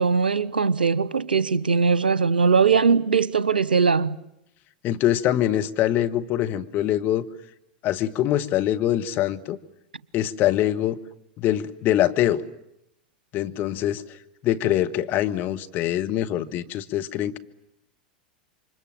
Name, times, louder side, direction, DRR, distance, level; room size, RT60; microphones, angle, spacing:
voice 1, 0.0-4.2, right 5 dB, 85° right, 0.9 m, -20 dB
voice 2, 4.8-7.3 7.8-9.6 10.1-11.0 11.4-12.4 13.3-17.4, left 12 dB, 40° left, 1.6 m, -24 dB
28.5 x 25.0 x 7.7 m
figure-of-eight pair, 90°, 5 cm